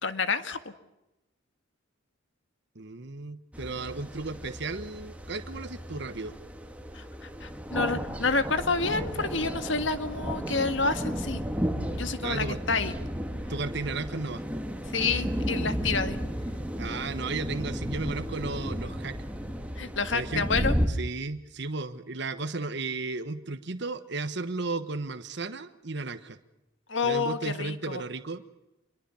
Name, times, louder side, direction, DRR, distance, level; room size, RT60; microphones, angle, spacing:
voice 1, 0.0-0.6 6.9-7.0 7.4-11.4 11.9-12.9 14.9-16.2 19.8-20.7 26.9-28.0, left 4 dB, 65° left, 10 dB, 1.7 m, -28 dB
voice 2, 2.7-6.3 12.2-12.6 13.5-14.4 16.8-19.2 20.1-20.5 20.9-26.4 27.0-28.4, right 3 dB, 55° right, 9 dB, 1.3 m, -34 dB
sound 1, 3.5-20.9, equal, 5° right, 1.8 m, -33 dB
26.5 x 22.0 x 7.1 m, 0.95 s
head